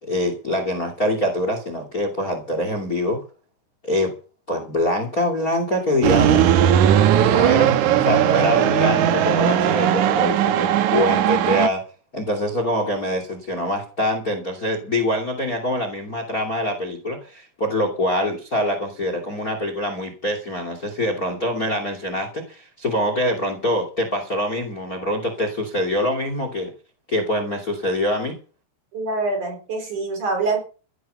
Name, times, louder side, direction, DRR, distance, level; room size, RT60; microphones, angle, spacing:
voice 1, 0.0-3.2 3.8-4.1 4.5-6.5 7.2-11.8 12.1-26.7 27.1-28.4, left 1 dB, 25° left, 6 dB, 2.6 m, -24 dB
sound 1, 6.0-11.7, right 10 dB, 90° right, 1.7 m, -18 dB
voice 2, 28.9-30.6, right 3 dB, 45° right, 4 dB, 5.4 m, -25 dB
15.5 x 11.0 x 5.4 m, 0.36 s
omnidirectional pair, 4.9 m